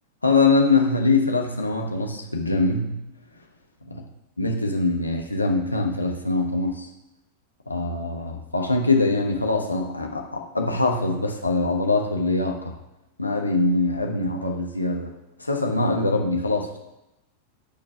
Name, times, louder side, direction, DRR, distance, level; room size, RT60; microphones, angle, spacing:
voice 1, 0.2-2.9 3.9-4.0 4.4-6.9 7.7-12.7 13.2-15.1 15.4-16.8, left 3 dB, 85° left, 2 dB, 1.1 m, -23 dB
10.5 x 4.6 x 5.6 m, 0.94 s
figure-of-eight pair, 90°, 0 cm